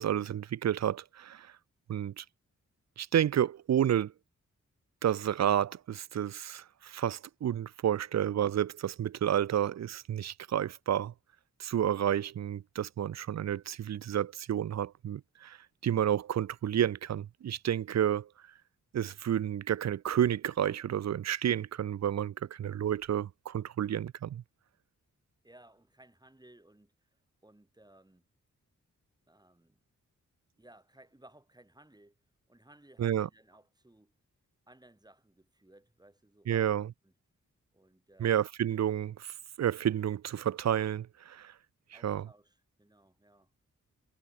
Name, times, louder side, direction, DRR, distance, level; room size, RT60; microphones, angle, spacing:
voice 1, 0.0-1.5 1.9-2.2 3.0-4.1 5.0-11.1 11.6-15.6 15.8-18.3 18.9-24.4 33.0-33.3 36.5-36.9 38.2-41.5 42.0-42.2, right 10 dB, 60° right, 0.5 m, -30 dB
voice 2, 25.4-28.2 29.3-29.8 30.6-32.2 32.5-34.1 34.7-37.1 37.7-38.4 41.9-43.5, right 1 dB, 15° right, 4.9 m, -60 dB
cardioid pair, 75°, 30 cm